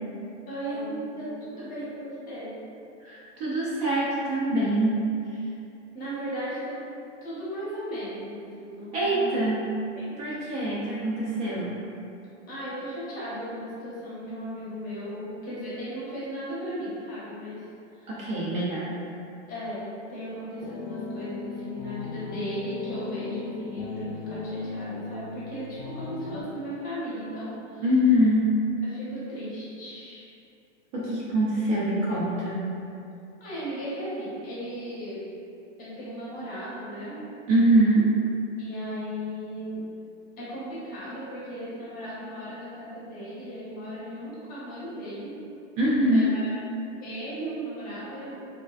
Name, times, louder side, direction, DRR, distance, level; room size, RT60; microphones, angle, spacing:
voice 1, 0.5-2.5 5.9-6.8 7.2-9.4 10.0-10.2 12.5-17.6 17.9-18.2 19.5-27.8 28.9-30.2 33.4-35.3 35.8-37.2 38.6-39.9 40.4-45.4 46.1-46.5 47.0-48.4, equal, 25° left, -9 dB, 0.7 m, -36 dB
voice 2, 3.0-5.4 8.9-9.7 10.2-11.8 18.1-19.0 27.8-28.7 30.9-32.7 37.5-38.2 45.8-46.4, right 1 dB, 35° right, -7 dB, 0.4 m, -24 dB
sound 1, 20.6-26.4, left 4 dB, 65° left, 0.5 m, -38 dB
2.4 x 2.1 x 2.3 m, 2.6 s
hypercardioid pair, 125°, 36 cm